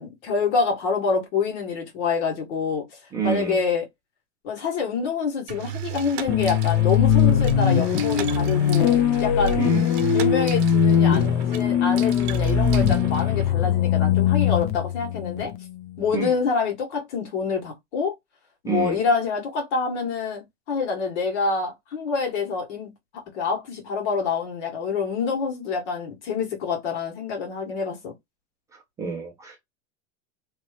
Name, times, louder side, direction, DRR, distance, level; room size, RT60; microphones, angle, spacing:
voice 1, 0.0-2.9 3.2-3.8 4.4-9.7 10.1-15.5 16.0-18.1 18.6-28.1, left 5 dB, 75° left, 1.8 m, -26 dB
voice 2, 3.1-3.6 9.6-9.9 16.1-16.4 18.6-19.0 28.7-29.6, right 6 dB, 10° right, 0.3 m, -29 dB
sound 1, 5.5-13.5, right 5 dB, 45° right, 0.7 m, -29 dB
sound 2, 6.3-16.2, left 11 dB, 50° left, 0.5 m, -21 dB
3.0 x 2.7 x 3.3 m
supercardioid pair, 170°, 35 cm